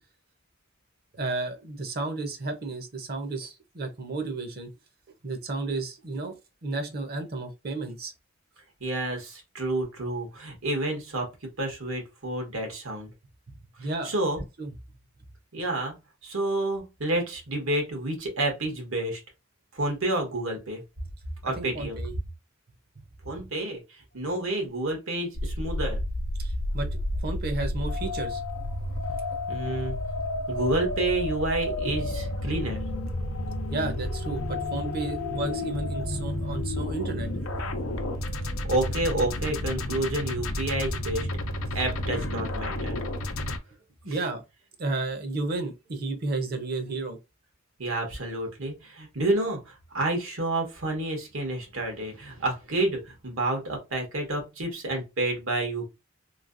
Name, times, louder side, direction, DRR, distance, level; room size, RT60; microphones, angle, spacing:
voice 1, 1.1-4.7 5.2-6.3 6.6-8.1 13.5-14.1 14.6-14.7 21.6-22.1 26.4-28.4 33.7-37.6 44.0-44.4 44.8-47.2, right 3 dB, 50° right, 0.8 m, -32 dB
voice 2, 8.8-11.3 11.6-13.1 14.0-14.4 15.5-16.0 16.2-19.2 19.7-20.8 21.4-22.0 23.2-26.0 29.5-30.0 30.5-32.8 38.6-41.3 41.7-43.0 47.8-55.9, right 2 dB, 85° right, 1.3 m, -29 dB
sound 1, 25.3-43.6, left 1 dB, 85° left, 0.6 m, -31 dB
3.1 x 2.8 x 2.6 m
head